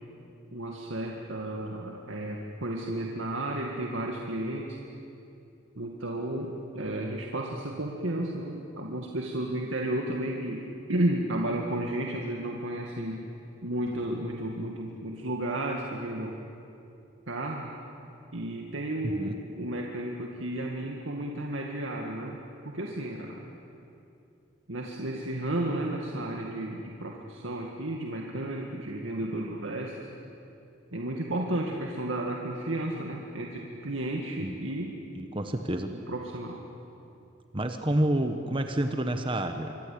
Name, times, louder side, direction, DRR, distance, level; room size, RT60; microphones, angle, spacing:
voice 1, 0.5-4.8 5.8-13.2 13.6-16.4 17.3-17.7 18.3-23.4 24.7-30.1 30.9-35.0 35.9-36.6, right 1 dB, 90° right, 0 dB, 2.1 m, -33 dB
voice 2, 35.1-35.9 37.5-39.8, right 1 dB, 25° right, 6 dB, 1.2 m, -29 dB
26.0 x 24.5 x 8.8 m, 2.7 s
head